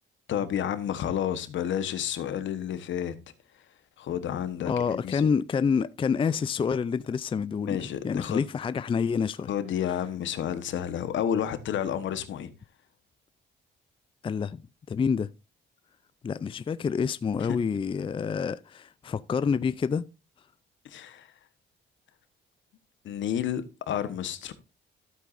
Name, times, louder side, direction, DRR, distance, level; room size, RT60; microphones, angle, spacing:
voice 1, 0.3-3.1 4.0-5.3 7.6-8.4 9.5-12.5 17.4-17.5 20.8-21.3 23.0-24.5, left 9 dB, 70° left, 1.2 m, -30 dB
voice 2, 4.7-9.5 14.2-14.6 14.9-15.3 16.2-20.0, left 6 dB, 25° left, 0.4 m, -27 dB
13.0 x 8.2 x 2.6 m
cardioid pair, 90°, 20 cm